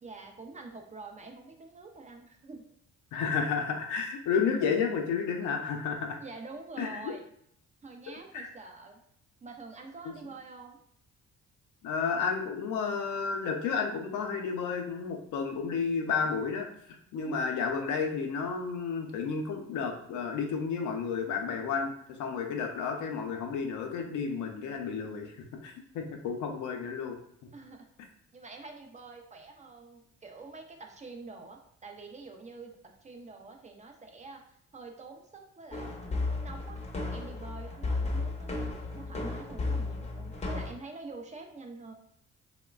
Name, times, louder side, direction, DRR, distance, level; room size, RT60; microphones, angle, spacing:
voice 1, 0.0-2.7 6.2-7.3 7.8-9.0 9.4-10.8 17.2-17.7 27.5-27.9 28.3-34.4 34.7-36.8 37.1-38.7 38.9-41.9, right 3 dB, 25° right, 3 dB, 0.3 m, -46 dB
voice 2, 3.1-6.2 6.8-7.1 8.3-8.5 11.8-16.7 17.1-25.4 25.6-27.2, left 5 dB, 80° left, 3 dB, 0.5 m, -31 dB
sound 1, 35.7-40.7, left 3 dB, 20° left, 0.6 m, -34 dB
3.0 x 2.1 x 2.3 m, 0.70 s
cardioid pair, 90°, 30 cm